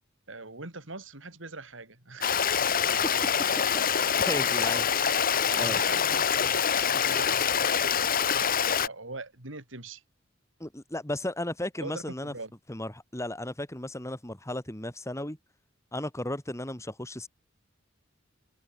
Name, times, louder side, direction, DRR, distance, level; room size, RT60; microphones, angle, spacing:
voice 1, 0.3-2.4 3.9-4.8 5.5-10.0 11.8-12.5, right 3 dB, 70° right, 4.4 m, -43 dB
Stream, 2.2-8.9, left 7 dB, 45° left, 1.3 m, -25 dB
voice 2, 4.0-4.9 5.6-5.8 10.6-12.3 12.7-15.4 15.9-17.3, left 1 dB, 15° left, 3.1 m, -35 dB
head